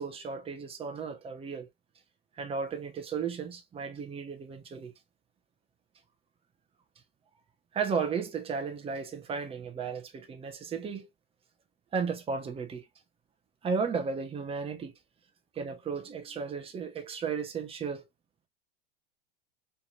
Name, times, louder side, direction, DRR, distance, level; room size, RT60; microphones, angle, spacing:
voice 1, 0.0-1.7 2.4-4.9 7.7-11.1 11.9-12.9 13.6-14.9 15.5-18.0, right 5 dB, 20° right, 1.1 m, -34 dB
4.5 x 3.4 x 2.5 m
hypercardioid pair, 110°, 30 cm